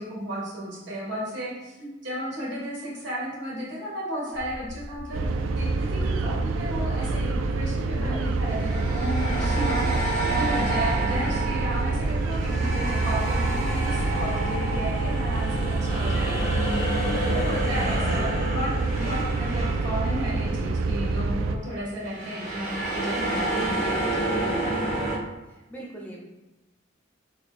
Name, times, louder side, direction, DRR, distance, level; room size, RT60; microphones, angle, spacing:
voice 1, 0.0-5.3 5.5-16.5 17.3-24.8, equal, 60° right, -5 dB, 1.5 m, -34 dB
sound 1, 4.3-16.0, left 1 dB, 65° left, 0.4 m, -40 dB
sound 2, 5.1-21.6, right 3 dB, 85° right, 0.3 m, -27 dB
sound 3, 5.8-6.0 8.5-20.8 21.1-21.3 22.0-25.2, right 1 dB, 40° right, 0.8 m, -30 dB
voice 2, 12.5-13.1 17.0-18.5 25.5-26.2, right 1 dB, 10° left, -2 dB, 0.4 m, -41 dB
3.7 x 3.4 x 2.4 m, 1.1 s
head